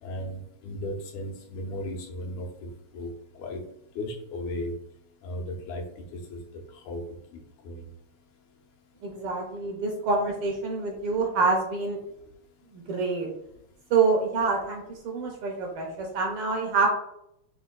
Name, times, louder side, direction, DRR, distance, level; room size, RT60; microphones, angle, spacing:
voice 1, 0.0-3.6 4.0-4.7 5.2-5.8 6.1-6.4 6.9-7.0 7.3-7.8, left 1 dB, 90° left, 1 dB, 2.3 m, -36 dB
voice 2, 9.0-12.0 12.7-13.3 13.9-16.9, right 4 dB, 75° right, 0 dB, 1.3 m, -26 dB
5.9 x 3.6 x 2.3 m, 0.77 s
omnidirectional pair, 3.3 m